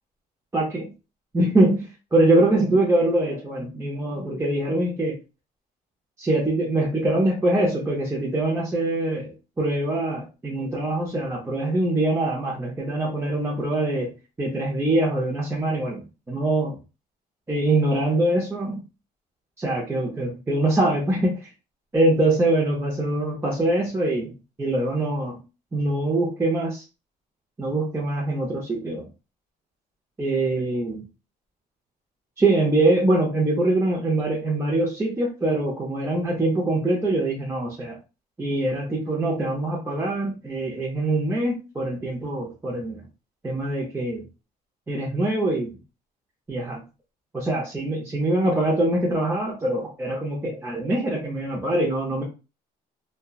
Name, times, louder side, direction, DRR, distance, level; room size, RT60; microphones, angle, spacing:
voice 1, 0.5-0.9 1.3-5.2 6.2-14.1 14.4-16.8 17.5-18.8 19.6-21.4 21.9-25.4 25.7-26.8 27.6-29.1 30.2-31.0 32.4-38.0 38.4-43.0 43.4-44.3 44.9-45.8 46.5-46.8 47.3-52.2, right 2 dB, 15° right, -2 dB, 0.6 m, -23 dB
2.8 x 2.2 x 2.3 m, 0.30 s
cardioid pair, 110°, 17 cm